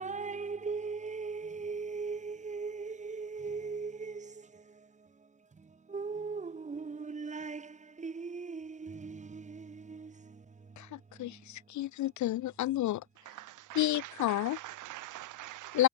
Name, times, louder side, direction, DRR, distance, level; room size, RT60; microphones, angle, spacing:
voice 1, 0.0-11.5, right 4 dB, 25° right, 1.1 m, -40 dB
voice 2, 10.8-13.0 13.7-14.6 15.7-15.9, left 14 dB, 70° left, 0.8 m, -30 dB
voice 3, 13.3-15.9, right 15 dB, 85° right, 2.0 m, -45 dB
cardioid pair, 90°, 30 cm